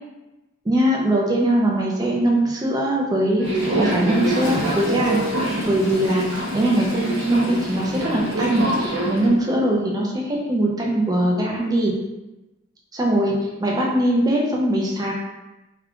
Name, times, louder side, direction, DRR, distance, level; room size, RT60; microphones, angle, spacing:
voice 1, 0.7-3.5 3.8-5.2 5.7-6.2 6.5-11.9 12.9-15.1, right 1 dB, 20° right, -2 dB, 0.4 m, -21 dB
Toilet flush, 3.4-9.2, left 1 dB, 80° left, 0.6 m, -36 dB
Subway metro underground, 3.4-9.3, right 1 dB, 70° right, 0.6 m, -25 dB
2.3 x 2.3 x 3.5 m, 1.0 s
head